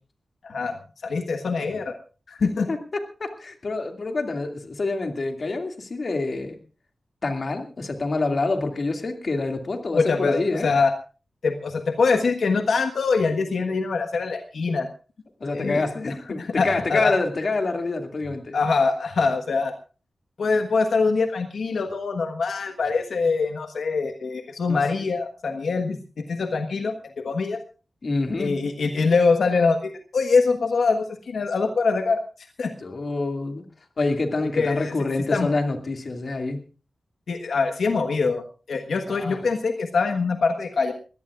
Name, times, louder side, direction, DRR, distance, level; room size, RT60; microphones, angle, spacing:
voice 1, 0.4-0.8 1.0-2.0 2.3-2.7 9.9-10.9 11.4-14.9 15.5-15.8 16.4-17.1 18.5-19.7 20.4-26.0 26.3-27.6 28.4-32.2 32.6-32.7 34.6-35.0 35.3-35.5 37.3-38.4 38.7-40.9, left 4 dB, 85° left, 6 dB, 1.3 m, -23 dB
voice 2, 2.7-6.6 7.2-10.7 15.4-18.6 24.7-24.8 28.0-28.6 32.8-33.6 34.0-36.6 39.1-39.4, left 3 dB, 50° left, 4 dB, 2.3 m, -27 dB
23.0 x 17.0 x 2.5 m, 0.35 s
wide cardioid pair, 115°, 0 cm